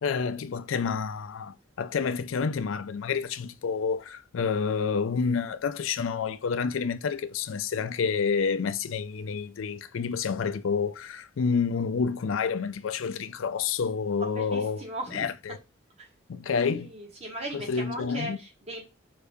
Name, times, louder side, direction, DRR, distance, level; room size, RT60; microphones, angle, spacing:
voice 1, 0.0-14.8 15.1-15.6 16.3-16.9 17.5-18.4, left 5 dB, 90° left, 0.4 m, -29 dB
voice 2, 14.2-15.3 16.0-16.1 16.6-18.8, right 1 dB, 30° right, 1.3 m, -38 dB
4.7 x 2.7 x 3.4 m
head